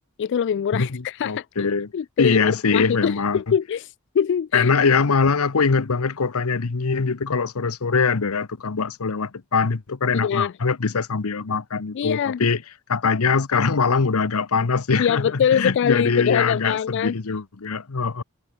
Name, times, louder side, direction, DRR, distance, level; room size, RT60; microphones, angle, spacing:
voice 1, 0.2-4.7 10.1-10.5 11.9-12.4 15.0-17.2, left 8 dB, 55° left, 0.3 m, -23 dB
voice 2, 0.7-1.9 2.2-3.4 4.5-12.6 12.9-18.2, left 5 dB, 85° left, 0.9 m, -22 dB
head